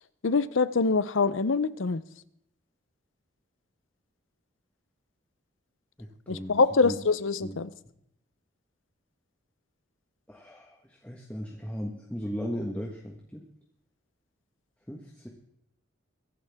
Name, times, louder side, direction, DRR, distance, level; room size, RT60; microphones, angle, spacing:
voice 1, 0.2-2.0 6.3-7.7, left 4 dB, 80° left, 16 dB, 0.7 m, -24 dB
voice 2, 6.0-6.5 6.8-7.0 7.4-7.5 10.3-13.4 14.9-15.3, equal, 5° left, -1 dB, 1.4 m, -37 dB
22.5 x 11.0 x 3.6 m, 0.74 s
head